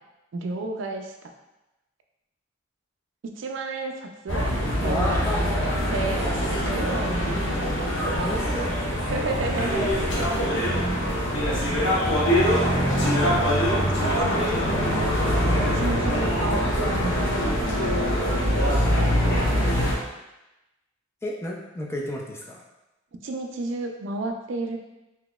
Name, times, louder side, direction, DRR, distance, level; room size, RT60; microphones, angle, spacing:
voice 1, 0.3-1.1 3.2-4.5 4.8-7.6 9.1-9.9 10.2-10.3 11.5-12.1 13.9-15.0 15.6-17.3 17.8-18.2 18.9-19.3 23.2-24.8, right 3 dB, 65° right, 4 dB, 0.4 m, -32 dB
sound 1, 4.3-19.9, equal, 65° left, 0.8 m, -23 dB
voice 2, 4.8-5.5 8.2-8.8 10.0-10.8 15.9-16.0 21.2-22.6, left 1 dB, 15° left, -2 dB, 0.3 m, -32 dB
3.9 x 2.8 x 2.3 m, 0.98 s
head